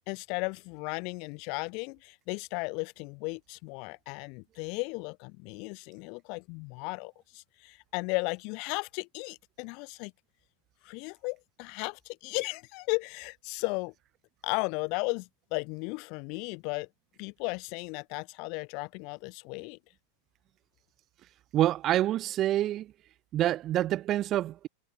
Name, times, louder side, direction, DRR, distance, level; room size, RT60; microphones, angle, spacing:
voice 1, 0.1-10.1 10.8-13.9 14.4-16.9 17.2-19.8, left 32 dB, 45° left, 2.6 m, -35 dB
voice 2, 21.5-22.9 23.3-24.7, right 13 dB, 30° right, 0.8 m, -27 dB
figure-of-eight pair, 90°, 0 cm